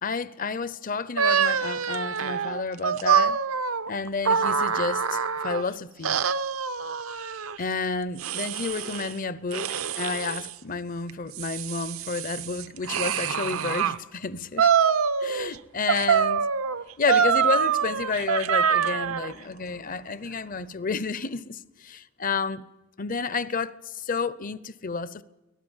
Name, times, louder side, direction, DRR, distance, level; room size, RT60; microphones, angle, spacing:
voice 1, 0.0-3.4 3.9-6.2 7.6-14.7 15.2-16.5 17.0-22.6 23.0-25.2, left 4 dB, 40° left, 0.7 m, -31 dB
sound 1, 1.2-5.6 6.0-7.6 8.2-9.1 9.5-10.5 11.1-14.0 14.6-15.6 15.9-19.3, right 7 dB, 80° right, 0.7 m, -25 dB
24.5 x 18.0 x 7.3 m
head